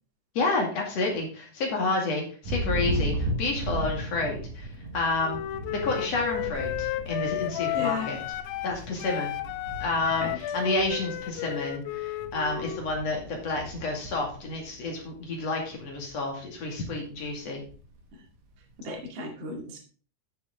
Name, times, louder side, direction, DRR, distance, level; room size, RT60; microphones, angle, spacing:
voice 1, 0.3-4.7 4.9-5.4 5.7-8.2 8.6-9.3 9.8-17.6, left 2 dB, 45° left, 0 dB, 2.6 m, -30 dB
Thunder, 2.4-15.3 15.7-16.2 16.6-18.0, equal, 80° right, 1.6 m, -36 dB
Wind instrument woodwind instrument, 5.2-8.8 9.0-12.9, left 14 dB, 85° left, 2.8 m, -33 dB
voice 2, 7.7-8.1 10.2-10.4 18.1-18.2 18.8-19.8, left 2 dB, 40° right, 1 dB, 1.8 m, -35 dB
12.5 x 6.6 x 3.7 m, 0.40 s
omnidirectional pair, 5.8 m